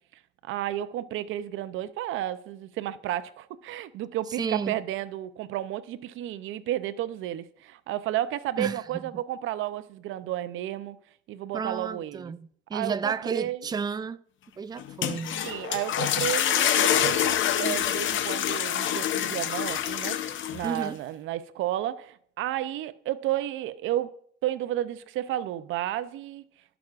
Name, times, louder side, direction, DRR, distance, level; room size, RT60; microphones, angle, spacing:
voice 1, 0.4-11.0 11.3-12.3 12.7-13.7 15.4-24.1 24.4-26.4, right 13 dB, 85° right, 0.5 m, -32 dB
voice 2, 4.4-4.8 8.6-9.1 11.5-14.2 14.6-15.5 20.6-21.0, right 5 dB, 20° right, 0.3 m, -32 dB
sound 1, 14.8-20.8, left 10 dB, 75° left, 0.7 m, -26 dB
16.0 x 6.0 x 2.4 m
cardioid pair, 90°, 20 cm